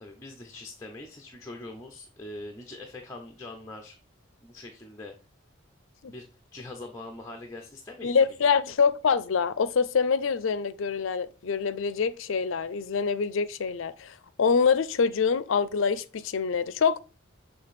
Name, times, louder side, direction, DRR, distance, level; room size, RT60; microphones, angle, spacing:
voice 1, 0.0-4.0 4.4-5.1 6.1-6.3 6.5-8.2, left 2 dB, 15° left, 0.7 m, -42 dB
voice 2, 8.0-17.0, left 5 dB, 70° left, 0.5 m, -25 dB
7.0 x 3.4 x 4.1 m
head